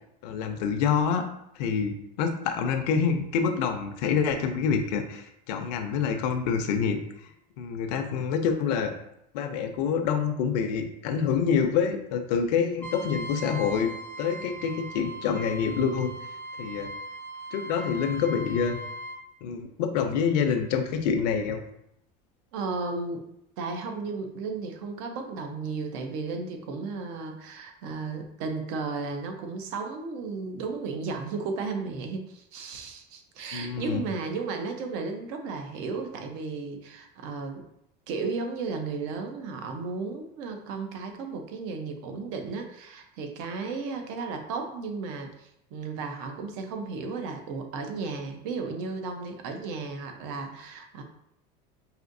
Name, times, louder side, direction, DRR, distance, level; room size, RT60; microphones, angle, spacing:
voice 1, 0.2-1.2 1.6-7.0 7.6-8.9 9.3-13.9 14.2-16.1 16.6-16.9 17.5-18.8 19.4-21.6 33.5-34.0, left 6 dB, 80° left, 6 dB, 0.6 m, -26 dB
Trumpet, 12.8-19.2, right 1 dB, 10° left, 0.5 m, -39 dB
voice 2, 22.5-23.2 23.6-37.6 38.1-51.0, right 4 dB, 70° right, 5 dB, 0.7 m, -34 dB
5.0 x 2.7 x 2.6 m, 0.77 s
supercardioid pair, 125°, 21 cm